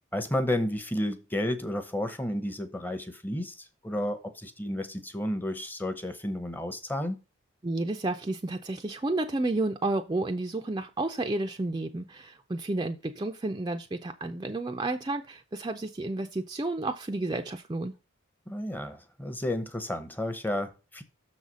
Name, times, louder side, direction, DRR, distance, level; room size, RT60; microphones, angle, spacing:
voice 1, 0.1-7.2 18.5-21.0, left 1 dB, 10° left, 0.7 m, -32 dB
voice 2, 7.6-17.9, right 2 dB, 20° right, 0.4 m, -31 dB
6.6 x 4.0 x 6.2 m
head